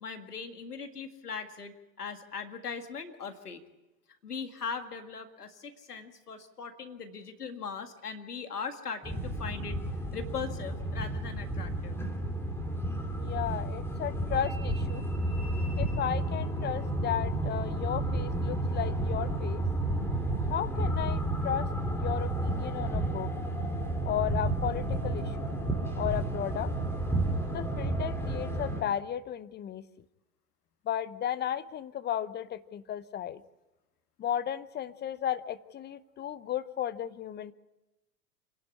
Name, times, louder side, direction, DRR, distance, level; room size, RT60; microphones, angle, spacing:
voice 1, 0.0-3.6 4.2-9.8 10.1-12.0, left 5 dB, 85° left, 7 dB, 2.0 m, -39 dB
sound 1, 9.0-28.8, right 1 dB, 5° left, 3.1 m, -31 dB
voice 2, 13.1-15.1 15.8-19.7 20.5-23.3 24.0-25.5 26.0-26.7 27.5-29.8 30.9-33.4 34.2-37.5, left 10 dB, 20° left, 15 dB, 0.8 m, -34 dB
26.0 x 11.5 x 9.7 m, 1.0 s
hypercardioid pair, 95°, 45 cm